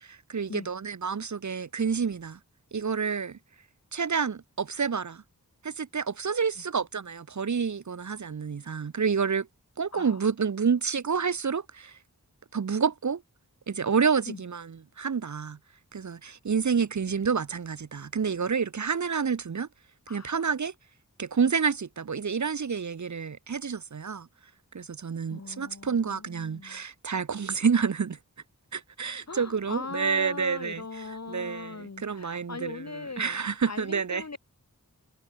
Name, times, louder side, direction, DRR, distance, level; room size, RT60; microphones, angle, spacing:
voice 1, 0.0-2.4 2.7-3.4 3.9-5.2 5.6-9.5 9.8-12.0 12.5-13.2 13.7-15.6 15.9-19.7 20.1-20.7 21.2-24.3 24.7-28.2 28.7-30.8 31.3-32.8 33.2-34.2, right 6 dB, 55° right, 0.7 m, -29 dB
voice 2, 9.9-10.2 14.3-14.4 20.1-20.4 25.3-26.8 29.3-34.4, left 4 dB, 50° left, 1.4 m, -40 dB
wide cardioid pair, 50°, 35 cm